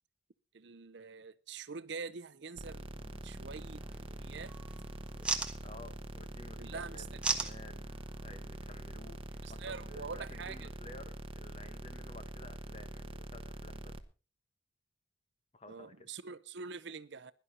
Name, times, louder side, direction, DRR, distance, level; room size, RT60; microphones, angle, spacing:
voice 1, 0.5-3.0 3.2-4.5 6.6-7.5 9.4-10.7 15.7-17.3, right 5 dB, 60° right, 0.6 m, -45 dB
sound 1, 2.6-14.0, right 1 dB, 30° right, 1.1 m, -45 dB
sound 2, 2.9-10.3, right 3 dB, 5° right, 1.3 m, -42 dB
voice 2, 5.6-8.0 8.2-9.2 9.5-13.9 15.5-16.1, left 2 dB, 35° left, 1.4 m, -53 dB
16.0 x 11.5 x 4.2 m
head